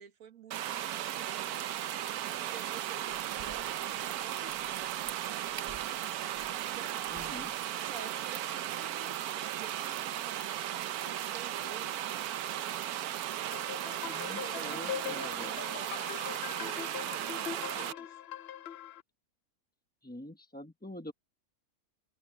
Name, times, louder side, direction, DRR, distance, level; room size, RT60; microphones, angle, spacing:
voice 1, 0.0-1.8 2.4-7.5 7.8-12.0 13.3-13.8 14.1-18.2, right 7 dB, 70° right, 2.0 m, -51 dB
sound 1, 0.5-17.9, right 12 dB, 85° right, 1.2 m, -36 dB
Crack, 3.1-8.2, right 3 dB, 45° right, 2.8 m, -55 dB
voice 2, 7.1-7.5 14.0-15.5 20.0-21.1, left 1 dB, 10° left, 0.8 m, -45 dB
sound 2, 13.5-19.0, left 10 dB, 60° left, 0.7 m, -41 dB
omnidirectional pair, 1.5 m